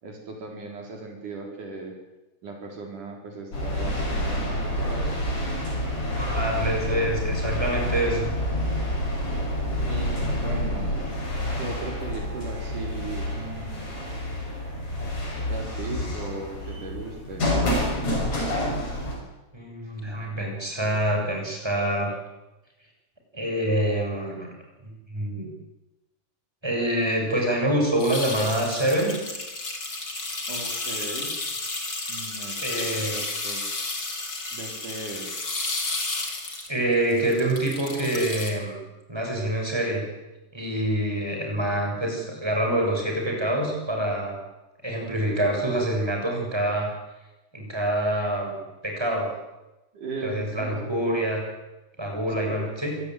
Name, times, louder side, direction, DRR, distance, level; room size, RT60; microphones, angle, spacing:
voice 1, 0.0-1.9 2.4-5.2 9.9-10.9 11.6-14.0 15.3-17.5 30.5-31.3 32.1-33.6 34.5-35.5 41.1-42.3 49.9-50.9 52.3-52.6, right 3 dB, 75° right, 1 dB, 5.6 m, -38 dB
sound 1, 3.5-19.1, left 1 dB, 60° left, 8.1 m, -28 dB
voice 2, 6.2-8.3 19.5-22.2 23.3-24.5 25.1-25.5 26.6-29.2 32.6-33.2 36.7-38.8 39.1-40.1 40.5-44.4 44.8-46.9 47.5-48.6 48.8-49.3 50.2-51.4 52.0-53.0, right 1 dB, 5° right, 0 dB, 7.3 m, -26 dB
sound 2, 28.0-38.5, left 3 dB, 35° left, 4.1 m, -32 dB
26.0 x 17.5 x 9.4 m, 1.0 s
omnidirectional pair, 3.6 m